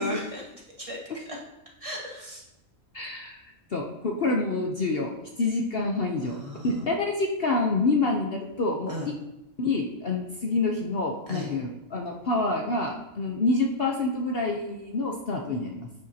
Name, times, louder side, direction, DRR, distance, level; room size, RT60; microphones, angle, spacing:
voice 1, 0.0-1.4 1.8-2.4 6.2-6.8 8.9-9.1 11.3-11.5, left 1 dB, 25° right, -4 dB, 1.7 m, -36 dB
voice 2, 2.9-3.4 3.7-5.1 5.4-6.4 6.6-8.9 9.6-15.9, left 3 dB, 50° left, 0 dB, 0.9 m, -27 dB
9.0 x 8.1 x 2.8 m, 0.92 s
omnidirectional pair, 1.4 m